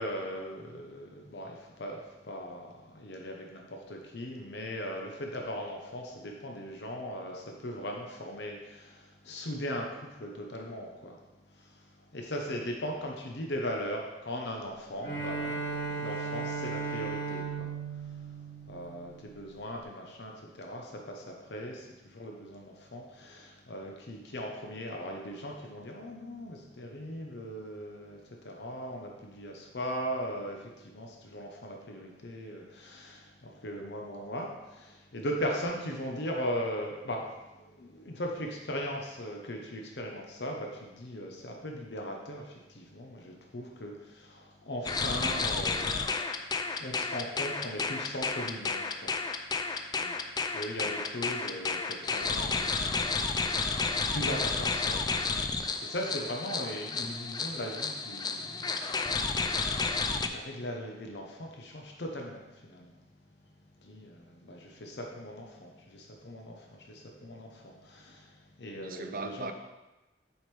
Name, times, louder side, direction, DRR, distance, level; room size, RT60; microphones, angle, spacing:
voice 1, 0.0-11.2 11.5-45.9 46.2-49.2 49.7-49.9 50.5-55.0 55.4-55.5 55.8-63.0 63.8-69.5, equal, 70° left, 1 dB, 0.9 m, -39 dB
Bowed string instrument, 15.0-19.3, right 4 dB, 90° left, 1.5 m, -36 dB
sound 1, 44.9-60.3, left 4 dB, 25° left, 0.3 m, -31 dB
voice 2, 68.7-69.5, right 3 dB, 55° right, 7 dB, 0.5 m, -39 dB
7.4 x 5.1 x 3.4 m, 1.1 s
head